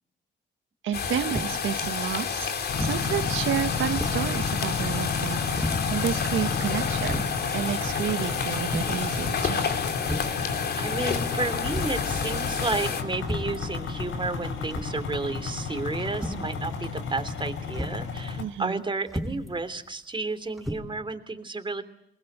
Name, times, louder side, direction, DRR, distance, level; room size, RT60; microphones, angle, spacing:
voice 1, 0.8-5.4 5.9-7.2 7.5-9.7 18.4-18.8, right 10 dB, 80° right, 7 dB, 1.6 m, -30 dB
sound 1, 0.9-13.0, left 6 dB, 55° left, 3.4 m, -30 dB
sound 2, 1.3-1.7 2.7-3.1 3.5-3.6 3.9-4.3 5.5-5.9 6.6-6.7 7.0-7.4 8.6-9.1 10.0-10.4 11.7-12.0 13.2-13.6 14.7-15.1 16.1-16.5 17.7-18.0 19.1-19.5 20.6-20.8, equal, ahead, 5.6 m, -33 dB
sound 3, 2.7-18.4, left 5 dB, 80° left, 5.9 m, -32 dB
voice 2, 10.8-21.8, right 3 dB, 25° right, 9 dB, 3.2 m, -32 dB
28.0 x 21.0 x 8.1 m, 0.76 s
cardioid pair, 95°, 20 cm